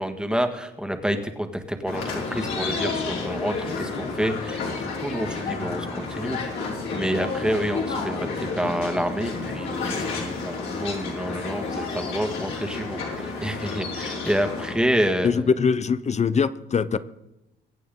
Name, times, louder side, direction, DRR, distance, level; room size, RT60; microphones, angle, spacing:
voice 1, 0.0-15.4, equal, 5° right, 6 dB, 1.7 m, -28 dB
sound 1, 1.9-14.8, left 4 dB, 80° left, 5.0 m, -30 dB
voice 2, 15.2-17.0, left 6 dB, 35° left, 15 dB, 0.8 m, -23 dB
23.0 x 8.4 x 3.8 m, 0.91 s
cardioid pair, 90°, 20 cm